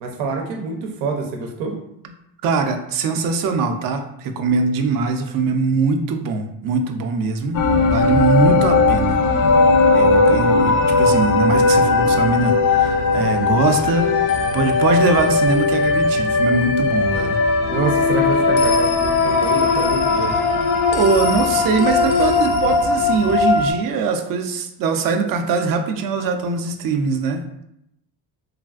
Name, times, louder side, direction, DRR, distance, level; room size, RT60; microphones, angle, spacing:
voice 1, 0.0-1.8 17.7-20.4, right 4 dB, 90° right, 2 dB, 0.7 m, -26 dB
voice 2, 2.4-7.6 7.8-9.2 9.9-14.1 14.5-17.4 20.3-20.5 20.9-27.6, right 4 dB, 50° right, 6 dB, 0.5 m, -21 dB
sound 1, 7.5-23.7, left 3 dB, 50° left, 0.4 m, -18 dB
3.2 x 2.4 x 2.3 m, 0.79 s
cardioid pair, 95°, 43 cm